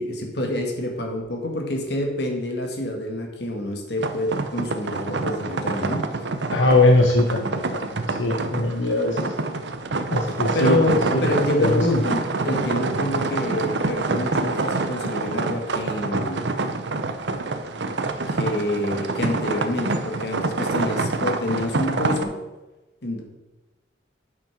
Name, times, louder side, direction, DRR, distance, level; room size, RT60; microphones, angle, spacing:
voice 1, 0.0-6.1 10.5-16.5 18.3-22.4 23.0-23.2, left 1 dB, 60° left, 2 dB, 1.8 m, -27 dB
sound 1, 4.0-22.2, right 3 dB, 65° right, 0.7 m, -27 dB
voice 2, 6.5-9.3 10.1-10.8 11.1-11.3 11.6-12.0, left 2 dB, 85° left, 1 dB, 1.0 m, -21 dB
8.8 x 6.3 x 5.9 m, 1.1 s
head